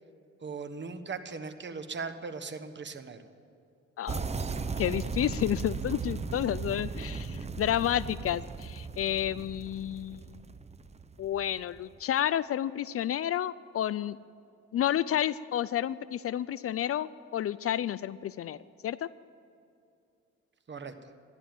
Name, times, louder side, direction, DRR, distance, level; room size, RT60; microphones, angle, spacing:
voice 1, 0.4-3.2 20.7-20.9, right 4 dB, 35° right, 9 dB, 1.3 m, -39 dB
sound 1, 4.1-11.8, right 4 dB, 20° right, 0.7 m, -37 dB
voice 2, 4.8-10.4 11.2-14.2 14.7-18.6 18.8-19.1, left 11 dB, 50° left, 18 dB, 0.4 m, -30 dB
14.0 x 11.0 x 7.8 m, 2.5 s
cardioid pair, 90°, 30 cm